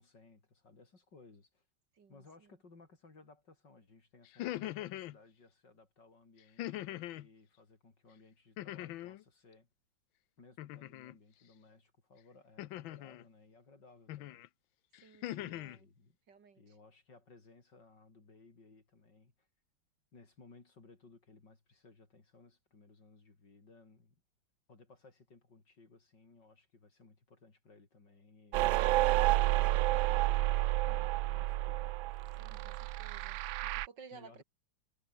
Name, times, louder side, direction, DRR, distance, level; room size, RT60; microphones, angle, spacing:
voice 1, 0.0-1.7 2.1-9.7 10.4-14.4 15.3-16.2 16.6-19.5 20.1-24.2 24.7-31.9 32.5-33.0 34.1-34.4, left 3 dB, 60° left, 5.0 m, -60 dB
voice 2, 1.9-2.5 15.0-15.9 16.3-16.8 32.4-34.4, right 5 dB, 65° right, 2.6 m, -57 dB
sound 1, 4.3-5.2 6.6-7.3 8.6-9.2 10.6-11.2 12.6-13.2 14.1-14.5 14.9-15.8, left 15 dB, 80° left, 1.5 m, -41 dB
sound 2, 28.5-33.9, right 17 dB, 80° right, 1.3 m, -30 dB
omnidirectional pair, 2.1 m